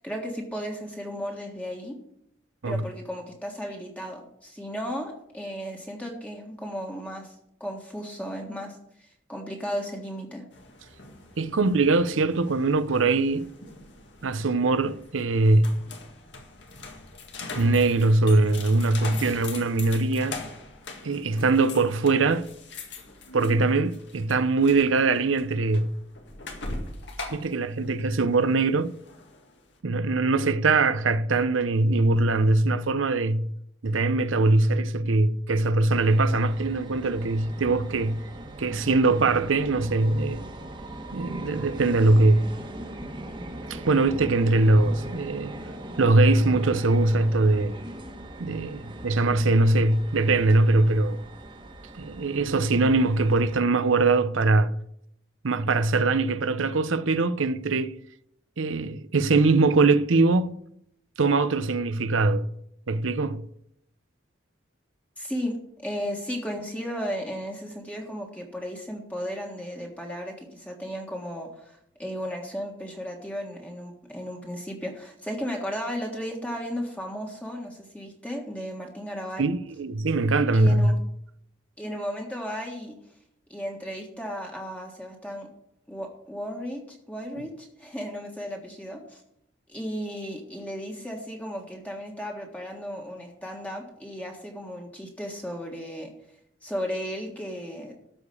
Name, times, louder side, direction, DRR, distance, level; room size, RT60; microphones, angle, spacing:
voice 1, 0.0-2.0 2.7-7.3 7.6-10.4 65.2-65.6 65.8-79.5 80.5-81.0 81.8-83.0 83.5-85.5 85.9-89.2 89.7-96.1 96.6-97.9, equal, 5° left, 1.6 m, -35 dB
sound 1, 10.5-29.7, left 3 dB, 65° left, 1.9 m, -42 dB
voice 2, 11.4-13.5 14.2-15.7 17.5-20.4 21.0-22.5 23.3-25.9 27.3-28.9 29.8-33.5 33.8-38.2 38.6-40.4 41.1-42.5 43.7-45.5 46.0-47.8 48.4-51.2 51.9-54.7 55.4-57.9 58.6-60.5 61.2-62.5 62.9-63.4 79.4-80.9 87.4-87.5, right 3 dB, 90° right, 0.7 m, -22 dB
sound 2, 35.9-53.6, right 1 dB, 25° right, 1.3 m, -40 dB
13.0 x 5.0 x 8.4 m
head